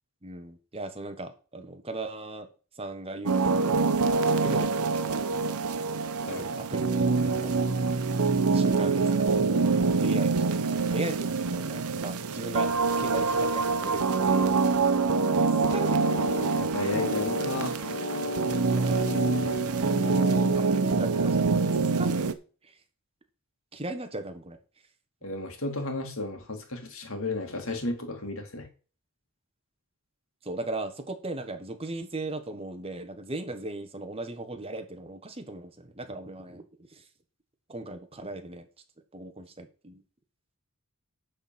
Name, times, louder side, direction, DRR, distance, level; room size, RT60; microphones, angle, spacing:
voice 1, 0.2-2.5 2.7-5.2 6.2-6.9 7.2-7.6 8.4-14.0 14.3-14.6 15.5-16.0 16.9-17.0 18.7-19.5 19.8-20.2 20.5-22.4 22.6-22.8 23.7-24.6 30.4-37.1 37.7-38.7 39.1-40.0, right 2 dB, 25° right, 8 dB, 1.3 m, -38 dB
sound 1, 3.3-22.3, right 4 dB, 90° right, 0.9 m, -25 dB
voice 2, 6.2-6.6 15.7-15.9 16.5-17.9 25.2-28.7, left 2 dB, 65° left, 5 dB, 2.3 m, -33 dB
sound 2, 15.5-20.6, left 1 dB, 45° left, 2.1 m, -35 dB
10.0 x 4.3 x 7.5 m, 0.37 s
head